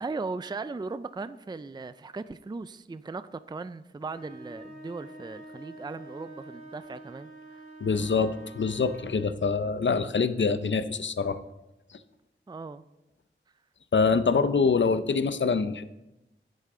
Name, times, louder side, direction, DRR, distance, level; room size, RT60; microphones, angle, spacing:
voice 1, 0.0-7.6 12.5-12.8, right 3 dB, 20° right, 14 dB, 0.4 m, -38 dB
sound 1, 4.0-9.4, right 2 dB, 45° right, 2.5 m, -47 dB
voice 2, 7.8-11.4 13.9-15.8, left 5 dB, 65° left, 12 dB, 0.6 m, -25 dB
11.0 x 8.2 x 3.8 m, 0.94 s
wide cardioid pair, 45°, 20 cm